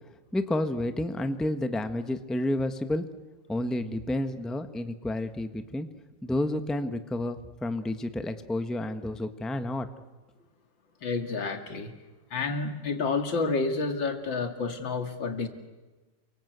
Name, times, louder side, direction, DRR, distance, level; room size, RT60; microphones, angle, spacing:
voice 1, 0.3-3.0 3.5-5.9 6.2-9.9, left 1 dB, ahead, 8 dB, 1.0 m, -30 dB
voice 2, 11.0-11.9 12.3-15.5, left 4 dB, 90° left, 6 dB, 3.0 m, -29 dB
28.0 x 24.5 x 8.1 m, 1.2 s
omnidirectional pair, 2.0 m